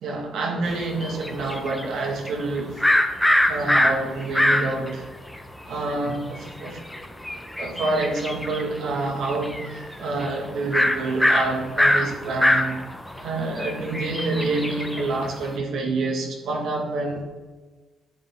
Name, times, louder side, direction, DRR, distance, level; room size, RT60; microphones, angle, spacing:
voice 1, 0.0-2.8 3.5-5.1 5.6-6.8 7.6-12.8 13.2-17.2, right 2 dB, 75° right, 1 dB, 2.1 m, -27 dB
sound 1, 0.7-4.9 5.3-5.4 5.6-8.7 9.1-9.9 10.2-10.3 10.7-15.4, left 1 dB, 5° left, 1.0 m, -23 dB
10.5 x 7.0 x 3.8 m, 1.3 s
cardioid pair, 90°, 0 cm